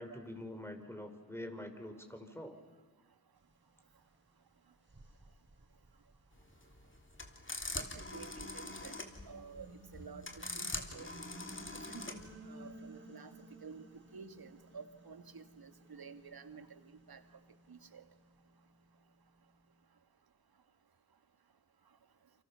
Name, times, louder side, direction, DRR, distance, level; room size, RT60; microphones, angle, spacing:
voice 1, 0.0-2.6, left 1 dB, 5° left, 6 dB, 4.3 m, -45 dB
sound 1, 4.1-4.2 4.8-7.1 7.7-19.0, right 1 dB, 30° right, 5.1 m, -56 dB
sound 2, 6.4-12.3, left 2 dB, 30° left, 3.3 m, -43 dB
voice 2, 7.7-9.0 9.3-9.7 9.9-11.1 11.9-12.2 12.5-13.3 13.6-13.8 14.1-16.8 17.1-17.2 17.7-18.0, right 5 dB, 65° right, 10 dB, 2.0 m, -51 dB
29.5 x 24.5 x 7.0 m, 1.3 s
cardioid pair, 45°, 39 cm